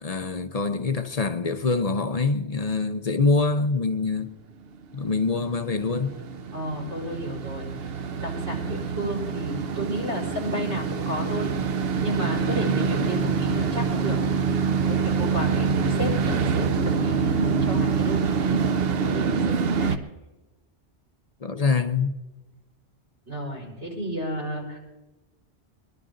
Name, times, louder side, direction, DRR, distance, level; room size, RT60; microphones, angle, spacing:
voice 1, 0.0-4.3 4.9-6.2 8.7-8.8 21.4-22.1, left 4 dB, 40° left, 0.7 m, -25 dB
sound 1, 4.7-20.0, right 5 dB, 60° right, 0.9 m, -26 dB
voice 2, 6.5-11.5 12.0-14.2 14.8-20.0 23.3-24.8, equal, 80° right, 5.4 m, -32 dB
23.5 x 11.5 x 3.8 m
omnidirectional pair, 1.2 m